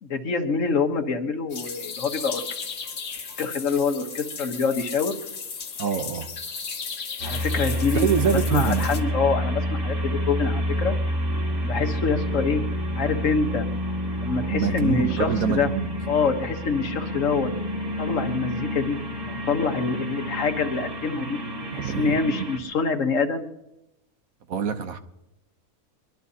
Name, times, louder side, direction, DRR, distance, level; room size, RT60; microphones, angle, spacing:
voice 1, 0.0-2.4 3.4-5.2 7.2-8.1 8.5-11.0 11.6-12.6 12.9-13.7 14.2-15.7 16.1-17.5 18.0-19.0 19.3-21.4 21.7-23.5, left 5 dB, 55° left, 6 dB, 1.4 m, -25 dB
sound 1, 1.5-9.0, left 5 dB, 90° left, 2.0 m, -35 dB
voice 2, 5.8-6.3 7.9-9.1 14.5-15.9 21.8-22.5 24.5-25.0, right 7 dB, 65° right, 8 dB, 1.4 m, -26 dB
sound 2, 7.2-22.6, equal, 35° right, 2.3 m, -28 dB
23.0 x 22.0 x 2.8 m, 0.91 s
omnidirectional pair, 1.6 m